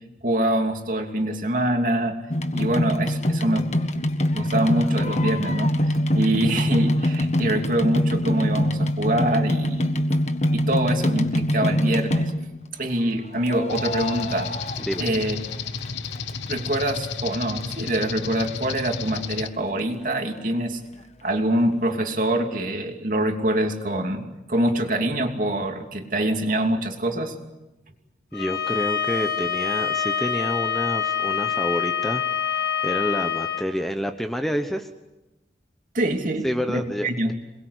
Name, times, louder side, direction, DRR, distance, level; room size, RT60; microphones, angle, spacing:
voice 1, 0.2-2.2 2.5-3.6 4.3-10.0 10.5-12.3 12.7-14.5 15.0-15.4 16.5-20.8 21.2-27.3 35.9-37.3, right 1 dB, 45° right, 4 dB, 2.9 m, -25 dB
sound 1, 2.3-12.6 13.5-15.6 15.8-16.8 17.3-17.4 17.6-17.7 17.9-18.0 18.4-18.5 18.8-18.9, left 1 dB, 40° left, 1.5 m, -24 dB
sound 2, 13.7-19.5, left 5 dB, 85° left, 1.1 m, -32 dB
Bowed string instrument, 28.3-33.7, left 8 dB, 55° left, 2.5 m, -26 dB
voice 2, 28.3-34.9 36.4-37.3, equal, ahead, 6 dB, 1.1 m, -28 dB
27.5 x 21.5 x 8.3 m, 1.0 s
head